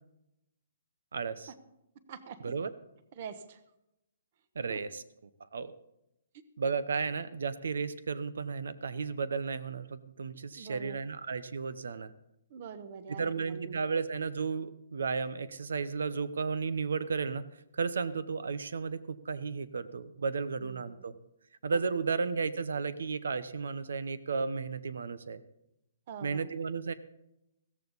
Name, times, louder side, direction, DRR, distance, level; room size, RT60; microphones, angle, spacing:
voice 1, 1.1-1.5 2.4-2.7 4.5-5.0 5.5-5.7 6.6-12.1 13.2-17.4 17.7-21.1 21.6-25.4 26.2-26.9, right 5 dB, 80° right, 14 dB, 0.9 m, -33 dB
voice 2, 3.1-3.6 4.7-4.8 10.5-11.0 12.5-13.8 20.7-21.0 21.7-21.8 26.1-26.5, right 6 dB, 35° right, 12 dB, 1.0 m, -44 dB
16.0 x 14.0 x 4.1 m, 0.86 s
hypercardioid pair, 175°, 0 cm